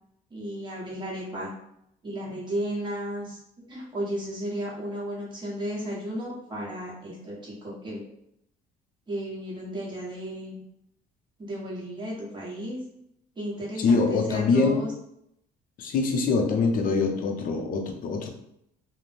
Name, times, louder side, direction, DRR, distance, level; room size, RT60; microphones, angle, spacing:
voice 1, 0.3-1.5 2.0-8.0 9.1-10.6 11.4-12.8 13.3-14.9, equal, 25° right, -5 dB, 1.2 m, -34 dB
voice 2, 13.8-14.8 15.8-18.3, left 4 dB, 55° left, 2 dB, 0.6 m, -24 dB
2.5 x 2.1 x 3.2 m, 0.76 s
cardioid pair, 110°, 17 cm